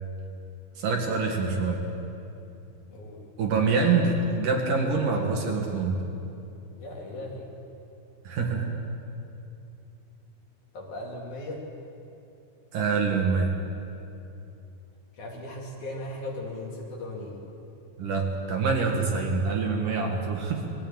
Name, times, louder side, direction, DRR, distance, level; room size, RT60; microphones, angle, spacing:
voice 1, 0.8-1.8 3.4-6.0 8.2-8.7 12.7-13.5 18.0-20.7, right 4 dB, 60° right, 0 dB, 3.3 m, -25 dB
voice 2, 2.9-3.2 6.8-7.6 10.7-11.6 15.1-17.5, left 1 dB, 55° left, -2 dB, 3.9 m, -37 dB
21.5 x 14.5 x 8.9 m, 2.8 s
omnidirectional pair, 4.5 m